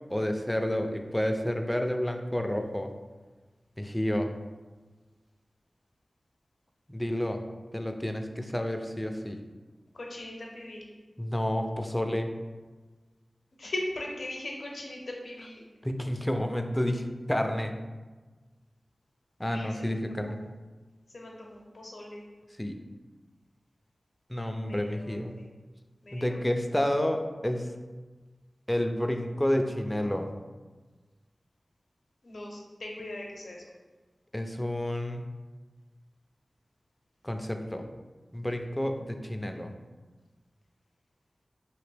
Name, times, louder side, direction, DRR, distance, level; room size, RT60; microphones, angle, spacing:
voice 1, 0.1-2.9 3.8-4.3 6.9-7.4 7.7-9.4 11.2-12.3 15.8-17.7 19.4-20.4 22.6-22.8 24.3-25.3 26.1-27.7 28.7-30.3 34.3-35.2 37.2-37.9 38.3-39.7, left 1 dB, 15° left, 5 dB, 0.3 m, -30 dB
voice 2, 9.9-10.9 13.6-15.6 19.5-19.9 20.2-20.3 21.1-22.3 24.7-25.5 26.0-26.4 32.2-33.6, left 1 dB, 80° left, -1 dB, 0.6 m, -39 dB
3.0 x 2.8 x 3.2 m, 1.3 s
cardioid pair, 45°, 0 cm